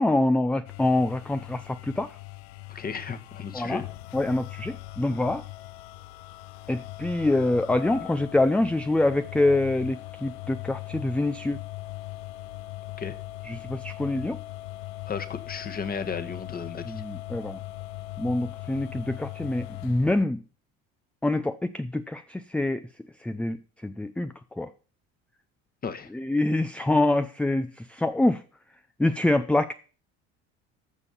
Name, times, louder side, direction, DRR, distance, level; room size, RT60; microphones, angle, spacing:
voice 1, 0.0-2.2 3.5-3.8 4.1-5.5 6.7-11.6 13.5-14.4 16.9-17.6 18.2-20.4 21.2-22.9 23.2-23.6 23.8-24.7 26.1-28.4 29.0-29.7, left 2 dB, 5° left, 10 dB, 0.5 m, -25 dB
sound 1, 0.6-20.2, left 17 dB, 90° left, 0.6 m, -40 dB
voice 2, 2.7-3.8 13.0-13.2 15.1-17.0 25.8-26.1, left 6 dB, 30° left, 11 dB, 1.4 m, -34 dB
14.5 x 5.3 x 7.1 m, 0.39 s
supercardioid pair, 95°, 30 cm